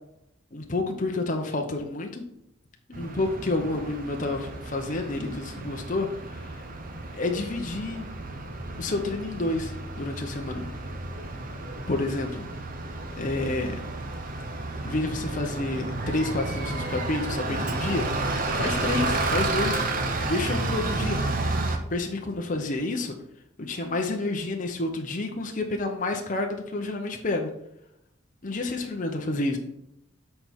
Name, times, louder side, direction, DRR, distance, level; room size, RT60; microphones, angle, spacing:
voice 1, 0.5-2.2 2.9-6.1 6.4-6.6 7.1-8.1 8.8-10.7 11.9-12.5 13.2-13.9 14.8-18.0 18.5-19.8 20.2-21.2 21.9-23.1 23.6-27.5 28.4-29.6, left 2 dB, 40° left, 3 dB, 0.8 m, -29 dB
Bus, 2.9-21.8, right 2 dB, 45° right, 0.8 m, -31 dB
7.6 x 4.4 x 4.4 m, 0.80 s
head